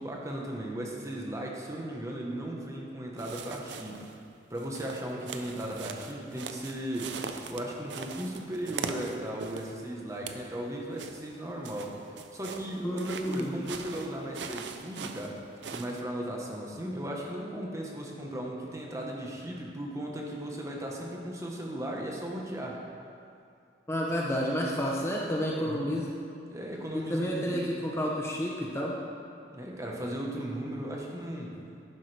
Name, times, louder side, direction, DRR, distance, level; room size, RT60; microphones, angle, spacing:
voice 1, 0.0-4.1 4.5-12.1 12.3-15.4 15.7-22.8 25.5-25.9 26.5-27.7 29.5-31.6, right 1 dB, 20° right, -1 dB, 1.2 m, -37 dB
sound 1, 3.2-4.2 4.6-9.8 10.1-10.5 11.0-16.0, right 5 dB, 90° right, 0.6 m, -41 dB
voice 2, 12.8-13.5 23.9-26.1 26.9-28.9, equal, 15° left, -3 dB, 0.8 m, -30 dB
11.5 x 10.0 x 3.4 m, 2.5 s
head